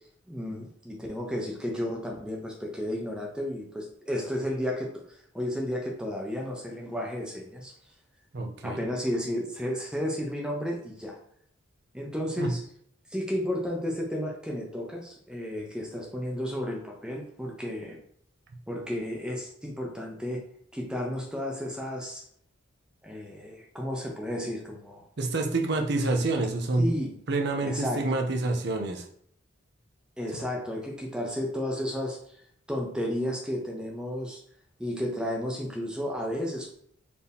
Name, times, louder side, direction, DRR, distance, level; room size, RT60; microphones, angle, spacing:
voice 1, 0.3-5.0 5.3-7.7 8.6-11.2 11.9-12.6 13.1-18.0 18.7-20.4 20.7-22.2 23.0-25.0 26.8-27.2 27.6-28.0 30.2-32.2 32.7-34.4 34.8-36.7, equal, 5° right, -1 dB, 0.6 m, -32 dB
voice 2, 8.3-8.8 12.4-12.5 25.2-26.9 27.3-29.1, right 2 dB, 50° right, 3 dB, 0.6 m, -27 dB
4.3 x 2.8 x 3.5 m, 0.64 s
head